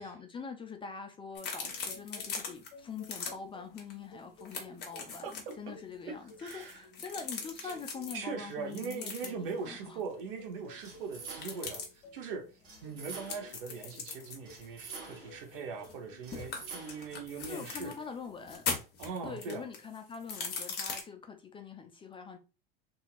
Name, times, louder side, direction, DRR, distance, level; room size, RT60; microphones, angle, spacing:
voice 1, 0.0-10.0 17.5-18.7 19.2-22.4, left 5 dB, 20° left, 0.4 m, -44 dB
sound 1, 1.4-2.7 3.0-3.3 3.8-3.9 4.2-5.5 6.3-8.2 8.7-9.5 11.3-11.9 13.3-16.0 16.3-18.0 18.4-21.0, left 5 dB, 35° left, 1.0 m, -40 dB
sound 2, 1.6-18.6, left 2 dB, 65° left, 0.7 m, -56 dB
voice 2, 5.2-5.7 6.1-6.8 7.6-7.7 8.1-12.5 12.8-17.9 19.0-19.6, right 5 dB, 70° right, 0.9 m, -41 dB
sound 3, 10.8-11.8 12.6-13.6 14.5-15.4 16.2-17.2, right 4 dB, 85° right, 1.2 m, -47 dB
2.8 x 2.7 x 2.4 m
hypercardioid pair, 90°, 29 cm